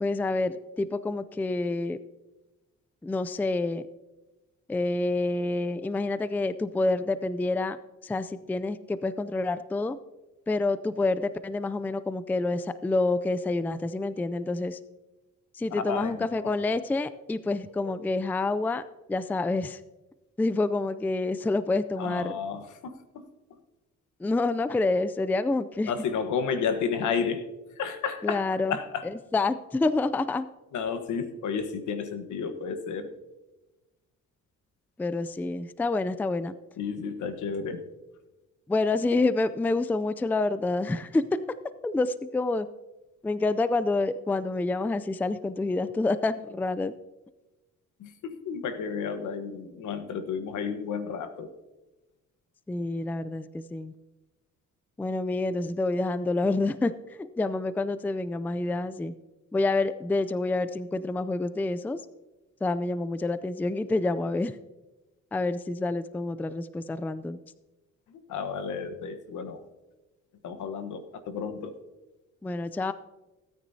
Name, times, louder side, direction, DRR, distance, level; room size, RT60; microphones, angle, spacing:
voice 1, 0.0-2.0 3.0-3.8 4.7-7.8 8.0-10.0 10.5-14.8 15.6-18.8 19.1-19.8 20.4-22.3 24.2-25.9 28.2-28.8 29.0-30.5 35.0-36.5 38.7-41.2 41.8-42.7 43.2-46.9 52.7-53.9 55.0-56.9 57.2-59.1 59.5-62.0 62.6-64.5 65.3-67.4 72.4-72.9, left 2 dB, 5° left, 14 dB, 0.3 m, -28 dB
voice 2, 15.7-16.5 22.0-22.9 25.9-27.4 27.8-28.4 28.7-29.1 30.7-33.1 36.8-37.8 48.0-51.5 68.1-69.6 70.4-71.7, left 6 dB, 75° left, 9 dB, 1.2 m, -32 dB
17.0 x 9.3 x 2.7 m, 1.1 s
cardioid pair, 90°, 30 cm